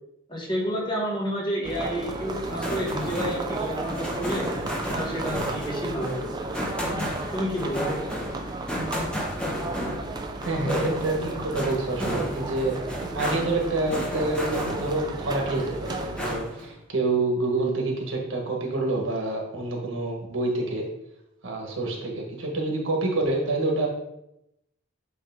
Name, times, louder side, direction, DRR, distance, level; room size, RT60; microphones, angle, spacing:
voice 1, 0.3-4.5 4.9-6.2 6.9-7.0 7.3-8.0 10.6-10.9, equal, 20° left, -2 dB, 1.2 m, -30 dB
sound 1, 1.6-16.4, right 2 dB, 20° right, 0.4 m, -34 dB
sound 2, 2.4-15.1 15.5-16.7, equal, 5° left, 1.0 m, -34 dB
voice 2, 10.4-20.8 21.4-23.9, right 2 dB, 70° right, 0 dB, 1.4 m, -27 dB
8.0 x 3.3 x 3.6 m, 0.83 s
head